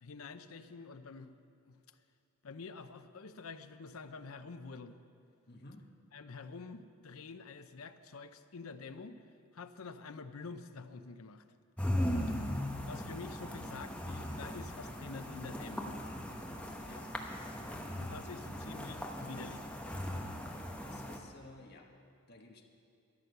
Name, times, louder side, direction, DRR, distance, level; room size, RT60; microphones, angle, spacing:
voice 1, 0.0-1.3 1.7-1.8 2.4-5.0 6.1-9.2 9.5-11.4 12.9-15.9 18.0-19.7, left 4 dB, 70° left, 10 dB, 0.6 m, -47 dB
voice 2, 5.5-5.9 16.8-17.1 20.8-21.9 22.3-22.6, left 2 dB, 45° left, 2 dB, 1.2 m, -54 dB
sound 1, 11.8-21.2, left 1 dB, 5° left, 1.0 m, -38 dB
13.5 x 10.0 x 6.6 m, 2.4 s
head